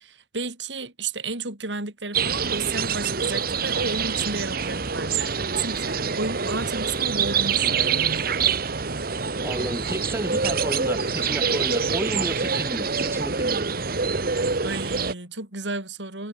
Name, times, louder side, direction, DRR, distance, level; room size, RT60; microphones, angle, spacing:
voice 1, 0.0-8.3 14.6-16.3, right 3 dB, 75° right, 4.1 m, -32 dB
sound 1, 2.1-15.1, right 5 dB, 55° right, 1.6 m, -25 dB
voice 2, 9.4-13.7, right 1 dB, 15° right, 3.2 m, -32 dB
head